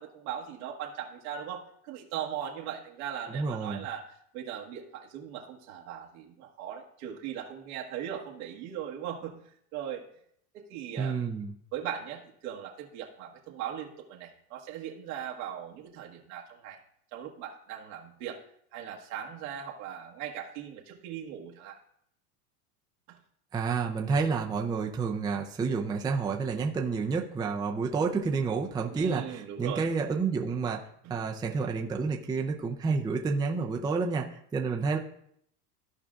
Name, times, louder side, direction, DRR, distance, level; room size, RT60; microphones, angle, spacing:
voice 1, 0.0-9.4 9.7-10.0 10.5-11.2 11.7-16.8 17.1-18.4 18.7-21.8 23.1-23.2 28.9-29.9 31.0-31.1 31.5-31.6, right 9 dB, 75° right, -1 dB, 1.4 m, -39 dB
voice 2, 3.3-3.8 11.0-11.5 23.5-30.8 31.1-35.0, right 4 dB, 10° right, 1 dB, 0.5 m, -29 dB
14.5 x 4.9 x 2.4 m, 0.69 s
supercardioid pair, 135°, 44 cm